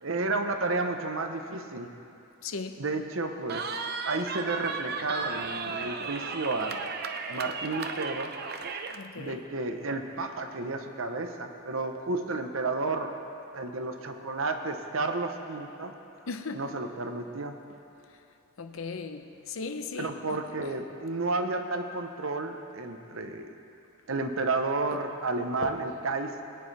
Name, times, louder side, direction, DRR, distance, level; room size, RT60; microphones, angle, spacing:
voice 1, 0.0-1.9 2.8-3.6 4.0-6.9 7.3-8.3 9.2-13.1 13.5-15.9 16.5-17.6 20.0-23.5 24.1-26.4, right 3 dB, 75° right, 6 dB, 0.9 m, -31 dB
voice 2, 2.4-2.8 5.7-5.9 8.9-9.4 16.3-16.7 18.6-20.1 25.6-25.7, left 4 dB, 75° left, 8 dB, 0.7 m, -37 dB
Cheering, 3.5-9.0, right 4 dB, 50° right, 0.6 m, -35 dB
21.0 x 9.8 x 3.4 m, 2.7 s
head